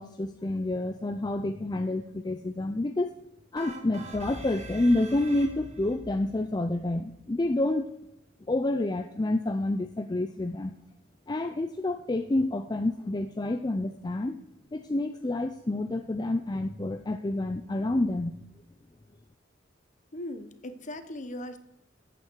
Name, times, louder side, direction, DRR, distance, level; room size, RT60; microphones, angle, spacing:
voice 1, 0.0-3.2 3.5-7.9 8.5-10.7 11.3-14.4 14.7-18.4, left 2 dB, 20° left, 6 dB, 0.5 m, -28 dB
sound 1, 3.6-6.0, right 3 dB, 35° right, 1.6 m, -46 dB
sound 2, 3.9-8.7, equal, 80° left, 1.8 m, -47 dB
voice 2, 20.1-21.6, left 1 dB, 40° left, 10 dB, 1.0 m, -38 dB
13.5 x 8.5 x 4.6 m, 0.84 s
head